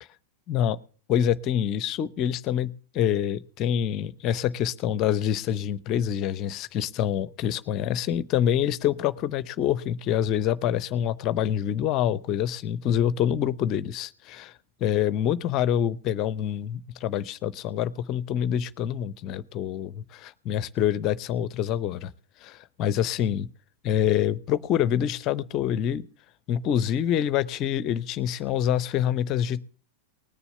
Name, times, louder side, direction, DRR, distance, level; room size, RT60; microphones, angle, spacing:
voice 1, 0.5-0.8 1.1-22.1 22.4-23.5 23.8-26.0 26.5-29.7, left 10 dB, 35° left, 19 dB, 0.6 m, -26 dB
19.0 x 7.0 x 6.8 m, 0.42 s
figure-of-eight pair, 90°, 0 cm